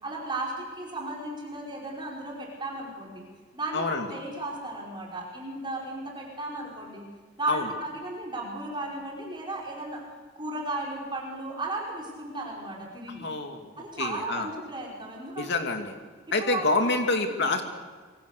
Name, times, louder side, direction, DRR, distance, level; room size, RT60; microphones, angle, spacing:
voice 1, 0.0-3.3 3.5-7.1 7.4-10.0 10.4-13.3 13.8-15.5 16.4-16.7, right 2 dB, 25° right, -2 dB, 5.2 m, -35 dB
voice 2, 3.7-4.1 7.5-7.7 13.2-13.7 14.0-14.5 15.4-16.0 16.3-17.6, left 3 dB, 60° left, 4 dB, 2.7 m, -27 dB
26.5 x 23.5 x 6.8 m, 1.5 s
head